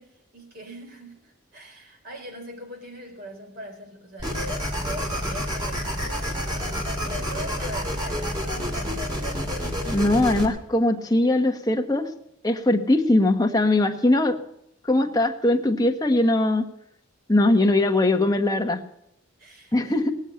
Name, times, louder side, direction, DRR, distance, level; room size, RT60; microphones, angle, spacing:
voice 1, 0.0-8.9 19.4-20.1, right 1 dB, 50° right, 3.9 m, -41 dB
sound 1, 4.2-10.5, equal, 20° right, 2.6 m, -28 dB
voice 2, 9.9-12.1 12.4-14.4 14.8-16.7 17.3-18.8 19.7-20.1, left 2 dB, 20° left, 1.2 m, -21 dB
19.0 x 7.3 x 9.7 m
head